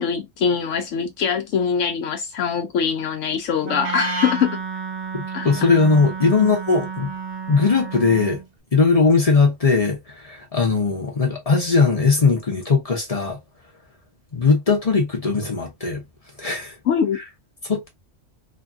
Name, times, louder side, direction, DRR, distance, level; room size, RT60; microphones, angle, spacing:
voice 1, 0.0-4.6 5.3-5.5 6.4-6.5 16.9-17.2, left 7 dB, 75° left, 0.9 m, -23 dB
Wind instrument woodwind instrument, 3.6-8.5, right 4 dB, 40° right, 0.7 m, -30 dB
voice 2, 5.1-7.1 7.5-8.4 8.7-13.4 14.3-16.0 16.4-16.8 17.7-17.9, left 4 dB, 35° left, 0.7 m, -19 dB
3.0 x 2.4 x 2.4 m
omnidirectional pair, 1.3 m